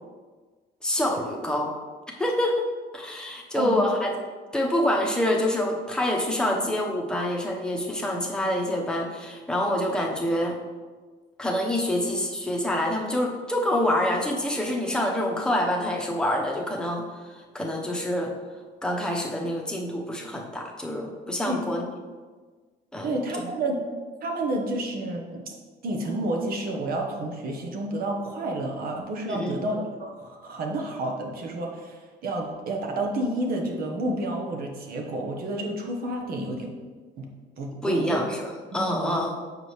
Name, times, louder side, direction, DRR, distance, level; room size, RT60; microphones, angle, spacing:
voice 1, 0.8-1.7 2.1-2.6 2.9-4.1 4.5-10.5 11.4-18.3 18.8-21.8 22.9-23.5 29.3-29.6 37.8-39.4, left 1 dB, 5° left, -1 dB, 1.0 m, -26 dB
voice 2, 23.0-23.8 24.2-25.5 25.8-36.7 37.2-37.3 37.6-38.2 38.7-39.1, right 1 dB, 60° right, 2 dB, 1.2 m, -30 dB
6.8 x 4.9 x 3.2 m, 1.4 s
cardioid pair, 110°, 17 cm